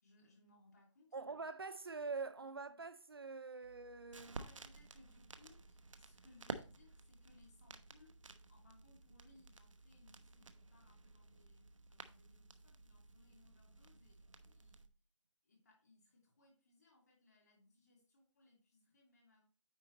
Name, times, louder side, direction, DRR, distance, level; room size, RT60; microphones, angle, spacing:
voice 1, 0.0-1.3 4.3-14.9 15.4-19.4, left 2 dB, 35° left, 2.8 m, -68 dB
voice 2, 1.1-4.4, right 4 dB, 50° right, 0.5 m, -45 dB
sound 1, 3.6-14.9, right 3 dB, 80° right, 1.0 m, -54 dB
9.4 x 4.2 x 4.0 m
hypercardioid pair, 175°, 16 cm